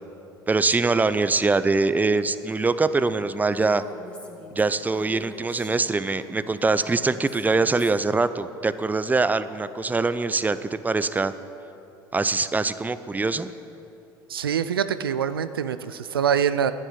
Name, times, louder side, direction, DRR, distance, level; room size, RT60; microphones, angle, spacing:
voice 1, 0.5-3.8 4.5-11.3 12.1-13.5, right 3 dB, 15° right, 13 dB, 0.6 m, -23 dB
Female speech woman speaking, 3.5-8.2, left 1 dB, 10° left, 2.6 m, -44 dB
voice 2, 14.3-16.7, right 8 dB, 90° right, 12 dB, 0.4 m, -24 dB
11.0 x 9.1 x 9.3 m, 2.8 s
hypercardioid pair, 70°, 12 cm